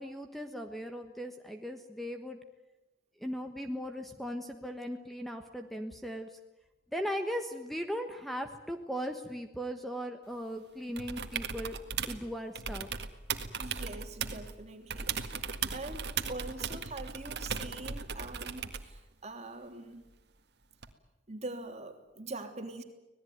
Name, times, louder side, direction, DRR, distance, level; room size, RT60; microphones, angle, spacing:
voice 1, 0.0-2.4 3.2-6.4 6.9-11.8 12.1-12.9, equal, ahead, 5 dB, 1.3 m, -38 dB
sound 1, 11.0-12.2 12.6-14.5 14.9-18.9 20.8-20.9, right 6 dB, 60° right, 1.9 m, -37 dB
voice 2, 13.6-20.0 21.3-22.8, right 2 dB, 35° right, 4 dB, 3.2 m, -43 dB
25.5 x 19.0 x 9.5 m, 1.0 s
head